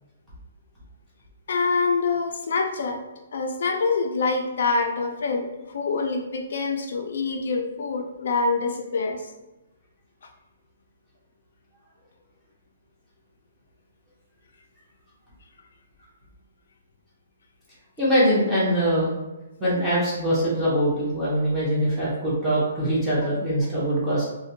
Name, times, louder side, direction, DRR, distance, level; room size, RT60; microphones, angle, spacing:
voice 1, 1.5-3.0 3.3-9.2, left 4 dB, 65° left, 3 dB, 0.3 m, -25 dB
voice 2, 18.0-19.1 19.6-24.3, equal, ahead, -11 dB, 0.7 m, -23 dB
2.5 x 2.1 x 2.6 m, 1.0 s
hypercardioid pair, 165°, 0 cm